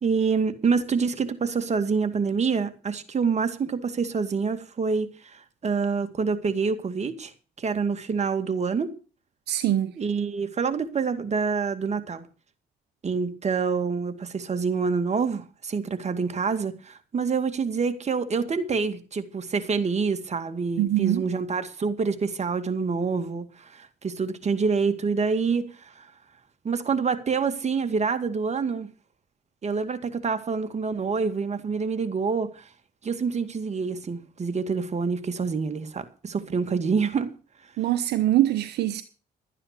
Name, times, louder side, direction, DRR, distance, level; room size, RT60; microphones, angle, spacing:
voice 1, 0.0-7.3 7.6-8.9 10.0-12.3 13.0-26.1 26.6-28.9 29.6-32.6 33.0-37.3, right 5 dB, 40° right, 2.1 m, -27 dB
voice 2, 9.5-9.9 20.8-21.2 37.8-39.0, right 13 dB, 75° right, 1.0 m, -23 dB
12.0 x 9.9 x 6.7 m
cardioid pair, 75°, 17 cm